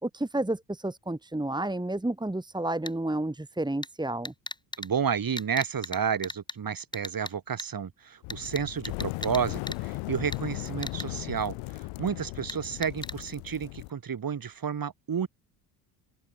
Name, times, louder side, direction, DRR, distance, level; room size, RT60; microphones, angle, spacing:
voice 1, 0.0-4.3, right 1 dB, 10° right, 3.1 m, -31 dB
sound 1, 2.9-3.0 3.8-3.9 4.2-4.9 5.4-6.0 6.2-6.5 6.9-7.3 7.6-7.7 8.3-9.4 9.7-9.8 10.3-10.4 10.8-11.1 12.5-12.6 12.8-13.1, left 1 dB, 10° left, 4.0 m, -36 dB
voice 2, 4.8-11.6 12.0-15.3, right 7 dB, 45° right, 6.8 m, -31 dB
sound 2, 8.2-13.9, left 25 dB, 85° left, 5.1 m, -37 dB
open air
supercardioid pair, 75°, 49 cm